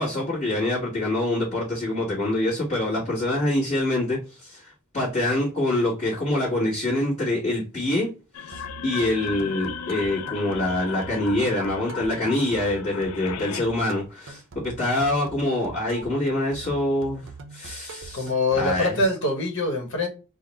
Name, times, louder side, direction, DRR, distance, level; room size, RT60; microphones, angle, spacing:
voice 1, 0.0-8.1 8.5-19.0, left 1 dB, 35° left, 1.6 m, -25 dB
sound 1, 8.3-13.6, left 8 dB, 90° left, 0.4 m, -36 dB
sound 2, 8.4-19.0, right 4 dB, 60° right, 0.7 m, -43 dB
voice 2, 18.1-20.1, left 2 dB, 60° left, 1.3 m, -24 dB
3.9 x 2.2 x 4.0 m
head